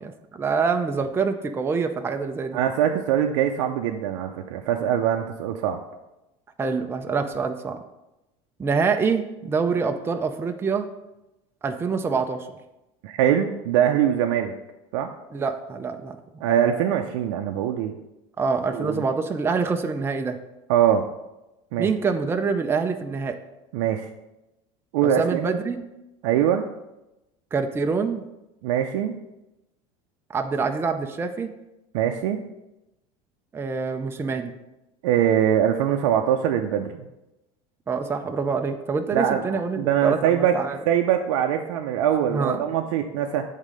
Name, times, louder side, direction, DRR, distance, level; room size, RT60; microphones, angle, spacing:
voice 1, 0.0-2.6 6.6-7.8 8.6-10.9 11.6-12.5 15.3-16.2 18.4-20.4 21.8-23.4 25.0-25.8 27.5-28.2 30.3-31.5 33.5-34.5 37.9-40.8 42.3-42.6, right 5 dB, 15° right, 6 dB, 0.5 m, -25 dB
voice 2, 2.5-5.8 13.0-14.5 14.9-15.1 16.4-17.9 18.7-19.0 20.7-21.0 21.7-21.9 23.7-24.1 24.9-25.6 26.2-26.6 28.6-29.1 31.9-32.4 35.0-37.1 39.1-40.6 40.9-43.4, right 9 dB, 80° right, 3 dB, 0.5 m, -22 dB
7.4 x 3.6 x 5.1 m, 0.95 s
supercardioid pair, 120°, 16 cm